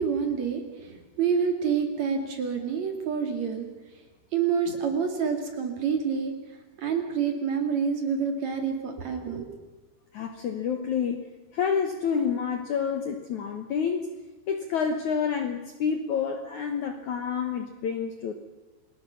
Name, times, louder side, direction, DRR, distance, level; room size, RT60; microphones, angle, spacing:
voice 1, 0.0-3.7 4.3-6.3 6.8-9.5, right 6 dB, 50° right, 5 dB, 2.8 m, -27 dB
voice 2, 10.1-11.2 11.5-14.1 14.5-18.3, left 6 dB, 75° left, 6 dB, 1.7 m, -28 dB
29.0 x 20.0 x 5.7 m, 1.2 s
omnidirectional pair, 5.2 m